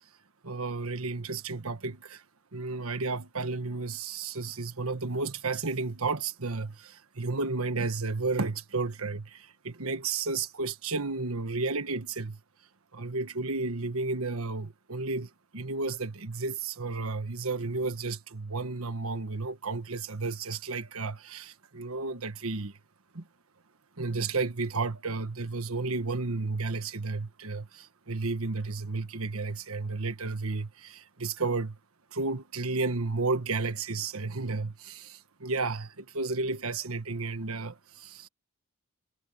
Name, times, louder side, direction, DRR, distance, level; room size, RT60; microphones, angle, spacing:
voice 1, 0.4-2.2 2.5-12.4 12.9-22.7 23.1-23.2 24.0-31.8 32.1-38.3, right 3 dB, 80° right, 1.5 m, -32 dB
head